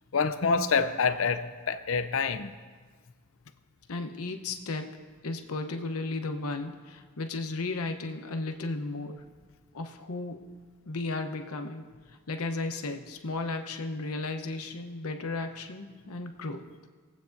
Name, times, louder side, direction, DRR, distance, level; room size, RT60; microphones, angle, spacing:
voice 1, 0.1-2.5, left 5 dB, 65° left, 0.5 m, -27 dB
voice 2, 3.9-4.9 5.2-9.2 9.7-10.4 10.9-11.8 12.3-16.6, left 3 dB, 85° left, 0.9 m, -34 dB
21.0 x 8.2 x 2.6 m
head